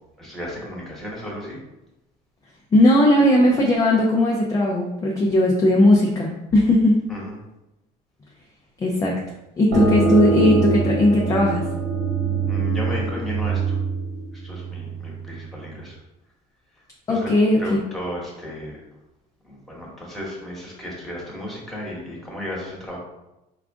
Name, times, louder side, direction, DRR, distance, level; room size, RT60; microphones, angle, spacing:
voice 1, 0.2-1.6 7.1-7.3 12.5-13.8 14.3-16.0 17.1-17.3 17.6-18.8 19.4-23.0, left 1 dB, ahead, -4 dB, 1.2 m, -34 dB
voice 2, 2.7-7.0 8.8-9.2 9.6-11.6 17.1-17.8, left 1 dB, 20° left, -1 dB, 0.5 m, -18 dB
sound 1, 9.7-15.1, right 3 dB, 90° right, 1.4 m, -23 dB
4.6 x 2.5 x 3.5 m, 0.94 s
cardioid pair, 150°, 17 cm